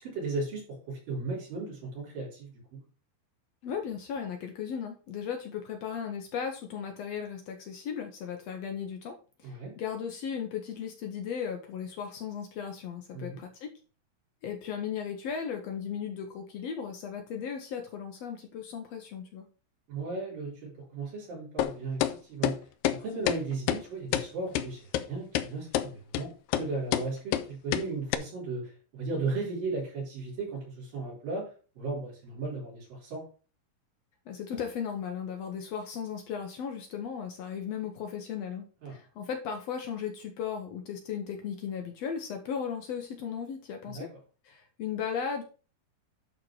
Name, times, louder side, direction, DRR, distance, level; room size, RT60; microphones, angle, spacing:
voice 1, 0.0-2.8 9.4-9.7 13.1-13.4 19.9-22.6 23.0-26.3 26.6-31.4 31.8-33.2 38.8-38.9 43.9-44.1, right 3 dB, 75° right, -6 dB, 5.8 m, -36 dB
voice 2, 3.6-9.1 9.4-13.7 14.4-19.4 34.3-44.1 44.5-45.4, left 7 dB, 70° left, 4 dB, 1.6 m, -36 dB
sound 1, 21.6-21.7 22.0-22.1 22.4-22.6 22.9-23.0 23.3-23.4 23.7-23.8 24.1-24.3 24.6-24.7 24.9-25.0 25.4-25.5 25.7-25.9 26.2-26.3 26.5-26.7 26.9-27.1 27.3-27.5 27.7-27.9 28.1-28.2, left 12 dB, 85° left, 2.3 m, -27 dB
11.0 x 4.2 x 4.7 m, 0.37 s
omnidirectional pair, 4.0 m